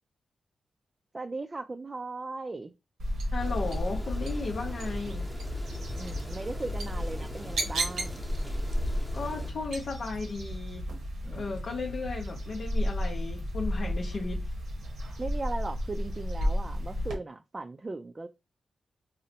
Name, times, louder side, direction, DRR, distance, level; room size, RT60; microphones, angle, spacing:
voice 1, 1.1-2.7 6.0-8.2 11.2-11.6 15.2-18.3, right 3 dB, 35° right, 0.3 m, -38 dB
sound 1, 3.0-17.2, equal, 90° right, 0.8 m, -33 dB
voice 2, 3.3-5.3 9.1-10.9 11.3-14.5, left 3 dB, 70° left, 0.6 m, -35 dB
sound 2, 3.4-9.5, left 1 dB, 5° left, 0.8 m, -40 dB
3.9 x 2.0 x 2.7 m
cardioid pair, 55°, 0 cm